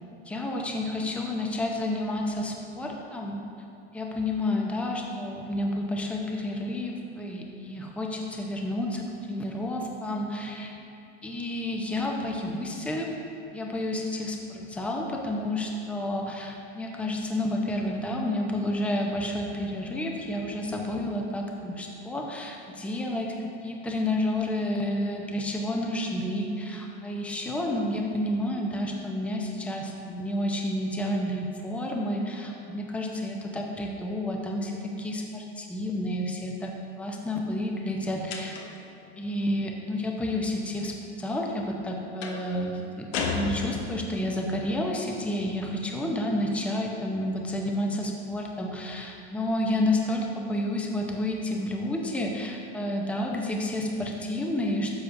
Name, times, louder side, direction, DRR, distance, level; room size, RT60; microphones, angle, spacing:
voice 1, 0.3-3.4 3.9-10.7 11.2-13.1 13.5-23.4 23.6-36.7 37.0-38.5 39.2-55.0, left 1 dB, 5° left, 0 dB, 0.6 m, -30 dB
sound 1, 38.3-38.9 42.2-42.5 43.1-44.2, left 4 dB, 75° left, 1.0 m, -32 dB
9.7 x 6.7 x 2.6 m, 2.7 s
supercardioid pair, 125°, 33 cm